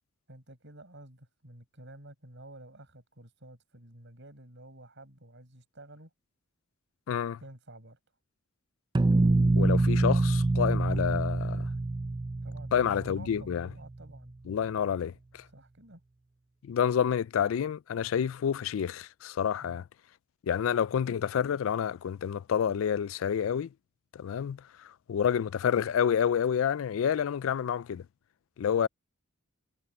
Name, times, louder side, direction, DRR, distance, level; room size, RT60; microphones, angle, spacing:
voice 1, 0.3-6.1 7.4-8.0 12.4-14.3 15.5-16.0 19.6-19.8, right 1 dB, 60° right, 7.5 m, -51 dB
voice 2, 7.1-7.4 9.6-11.7 12.7-13.7 14.5-15.4 16.6-19.8 20.4-23.7 24.1-28.0 28.6-28.9, left 8 dB, 70° left, 0.3 m, -29 dB
sound 1, 8.9-13.8, right 2 dB, 20° right, 0.4 m, -26 dB
head